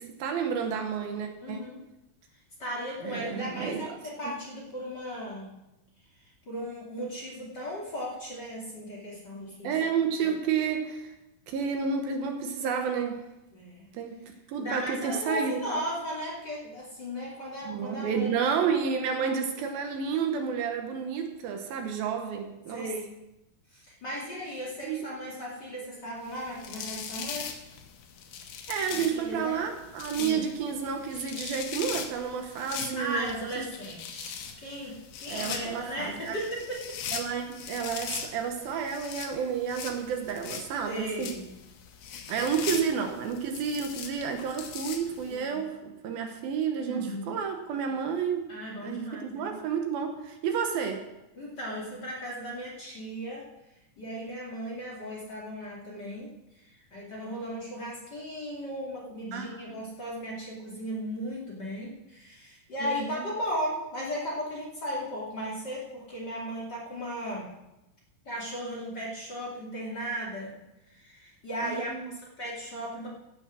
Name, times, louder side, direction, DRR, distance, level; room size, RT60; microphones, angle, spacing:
voice 1, 0.0-1.7 3.0-3.9 4.2-4.4 9.6-11.1 11.5-13.3 13.9-14.2 14.5-15.8 17.7-22.9 24.8-25.1 28.7-33.7 35.3-36.5 37.1-41.3 42.3-48.5 48.8-51.0 59.3-59.5 62.8-63.3 71.6-72.1, right 6 dB, 75° right, 5 dB, 2.8 m, -31 dB
voice 2, 1.4-1.8 2.6-5.5 6.2-9.8 13.5-13.9 14.6-18.5 22.0-22.1 22.7-23.2 23.7-27.5 28.9-29.6 30.2-30.5 33.0-37.0 40.8-41.5 42.3-42.5 45.3-45.6 46.9-47.4 48.5-49.6 51.4-53.5 54.0-67.5 68.2-70.6 70.9-73.1, equal, 30° left, -4 dB, 2.5 m, -36 dB
sound 1, 26.3-45.4, left 7 dB, 80° left, 3.2 m, -40 dB
15.5 x 6.4 x 6.3 m, 0.92 s
omnidirectional pair, 4.5 m